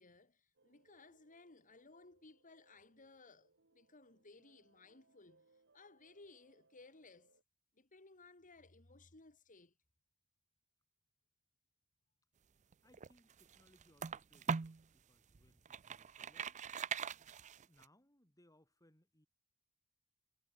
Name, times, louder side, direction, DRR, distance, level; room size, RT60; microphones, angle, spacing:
voice 1, 0.0-5.5 5.7-7.3 7.7-9.7, left 3 dB, 35° left, 2.3 m, -61 dB
sound 1, 0.6-7.4, right 3 dB, 55° right, 4.0 m, -74 dB
sound 2, 12.7-14.8 15.3-17.8, right 6 dB, 35° right, 0.5 m, -41 dB
voice 2, 12.8-16.6 17.6-19.3, left 1 dB, 15° left, 6.8 m, -70 dB
head